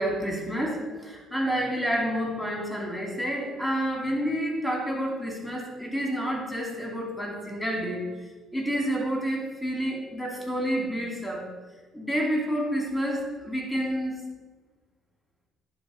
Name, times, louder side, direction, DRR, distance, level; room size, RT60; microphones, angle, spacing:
voice 1, 0.0-11.5 11.9-14.2, equal, 5° left, -1 dB, 2.5 m, -29 dB
10.5 x 3.5 x 5.0 m, 1.4 s
supercardioid pair, 65°, 0 cm